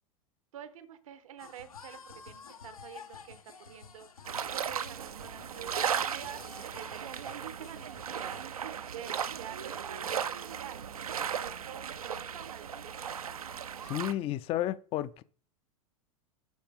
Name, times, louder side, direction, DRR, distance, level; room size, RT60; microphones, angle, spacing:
voice 1, 0.5-4.1 4.5-8.4 8.9-10.8 11.3-13.5, right 10 dB, 70° right, 0.9 m, -48 dB
sound 1, 1.4-8.5, left 5 dB, 90° left, 0.9 m, -51 dB
sound 2, 4.2-14.1, right 8 dB, 85° right, 0.5 m, -36 dB
voice 2, 13.8-15.2, left 13 dB, 35° left, 0.4 m, -32 dB
11.5 x 4.1 x 3.6 m
hypercardioid pair, 95°, 18 cm